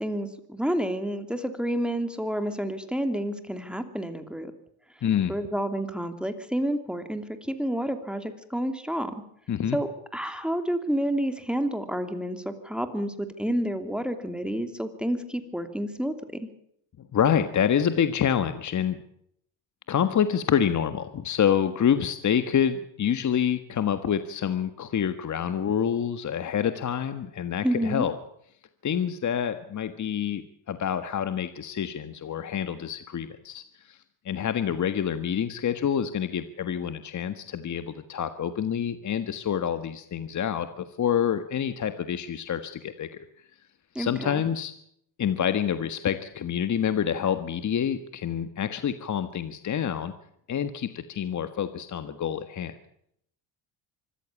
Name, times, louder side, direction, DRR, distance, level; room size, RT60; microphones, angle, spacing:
voice 1, 0.0-4.5 5.3-9.1 9.7-16.5 27.6-28.1 43.9-44.4, equal, ahead, 8 dB, 2.8 m, -29 dB
voice 2, 5.0-5.3 9.5-9.8 17.1-19.0 19.9-28.1 28.8-34.0 34.2-43.1 44.0-44.7 45.2-50.1 50.5-52.7, left 8 dB, 40° left, 10 dB, 1.6 m, -27 dB
25.0 x 14.5 x 8.5 m, 0.71 s
cardioid pair, 100°, 44 cm